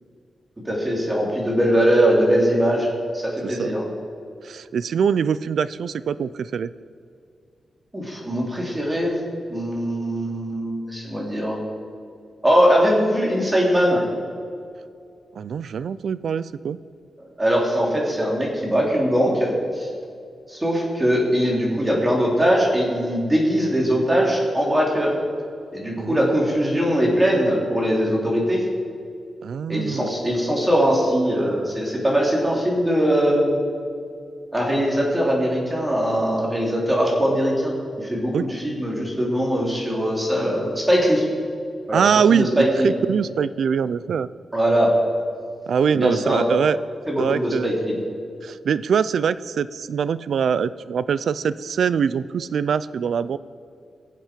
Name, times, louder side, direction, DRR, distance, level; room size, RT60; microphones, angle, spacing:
voice 1, 0.6-2.9 3.1-3.8 7.9-9.1 9.5-11.6 12.4-14.0 17.4-19.9 20.5-25.1 25.7-28.6 29.7-33.6 34.5-41.2 41.9-42.0 42.3-42.9 44.5-44.9 45.9-46.4 47.1-48.0, equal, 15° right, -2 dB, 3.3 m, -21 dB
voice 2, 4.4-6.7 15.4-16.8 26.0-26.3 29.4-30.1 38.3-38.4 41.9-44.3 45.7-46.8 47.2-47.7 48.4-53.4, right 7 dB, 75° right, 16 dB, 0.4 m, -23 dB
21.5 x 7.5 x 5.2 m, 2.3 s
wide cardioid pair, 115°, 0 cm